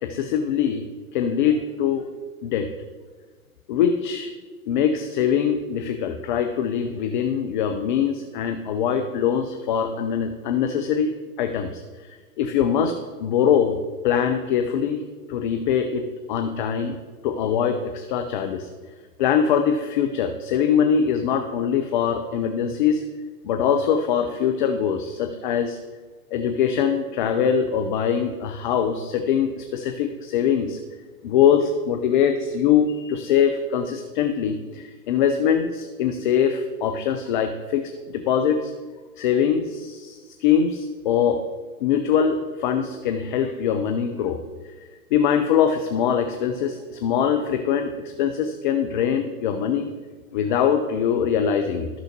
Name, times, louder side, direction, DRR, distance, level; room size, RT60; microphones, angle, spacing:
voice 1, 0.0-0.8 1.1-2.1 2.4-2.7 3.7-4.3 4.7-13.8 14.0-15.0 15.3-17.0 17.2-18.7 19.2-23.0 23.4-25.8 26.3-30.8 31.2-38.7 39.2-41.4 41.8-44.4 44.8-49.9 50.3-51.9, left 8 dB, 35° left, 7 dB, 0.5 m, -23 dB
14.0 x 6.3 x 2.8 m, 1.4 s
hypercardioid pair, 120°, 46 cm